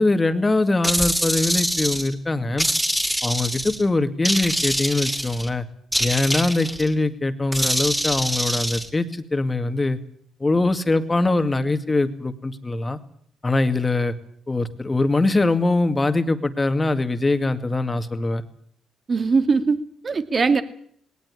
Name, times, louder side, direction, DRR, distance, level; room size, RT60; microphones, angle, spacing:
voice 1, 0.0-2.7 3.2-5.7 6.0-10.0 10.4-13.0 13.4-14.1 14.5-18.4, left 2 dB, 20° left, 9 dB, 2.2 m, -22 dB
sound 1, 0.8-2.1 2.6-3.8 4.3-5.5 5.9-6.9 7.5-8.9, equal, 5° right, 2.8 m, -24 dB
voice 2, 19.1-20.6, right 4 dB, 40° right, 10 dB, 2.3 m, -21 dB
19.5 x 18.5 x 10.0 m, 0.62 s
cardioid pair, 90°, 0 cm